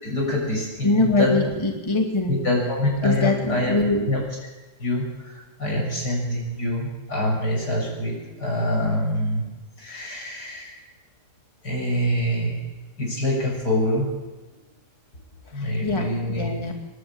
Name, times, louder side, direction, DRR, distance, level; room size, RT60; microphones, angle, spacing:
voice 1, 0.0-1.4 2.3-3.8 4.1-4.4 4.8-5.0 5.6-9.4 9.8-10.8 11.6-12.6 13.0-14.1 15.5-16.5, left 1 dB, 80° left, -1 dB, 7.7 m, -25 dB
voice 2, 0.8-2.3 3.0-4.0 15.5-16.7, left 3 dB, 15° left, 1 dB, 2.4 m, -23 dB
28.0 x 11.5 x 8.8 m, 1.2 s
omnidirectional pair, 1.8 m